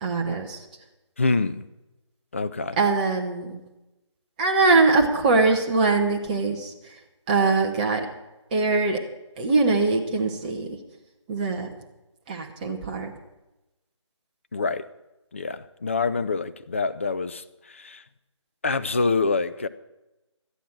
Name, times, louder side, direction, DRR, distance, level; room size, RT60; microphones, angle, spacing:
voice 1, 0.0-0.6 2.8-3.6 4.4-6.7 7.3-8.1 8.5-9.0 9.4-10.7 11.3-11.7 12.3-13.1, right 3 dB, 15° right, 1.0 m, -22 dB
voice 2, 1.2-1.6 2.3-2.8 14.5-14.8 15.3-18.0 18.6-19.7, left 4 dB, 25° left, 0.4 m, -26 dB
13.0 x 9.3 x 6.1 m
figure-of-eight pair, 155°, 16 cm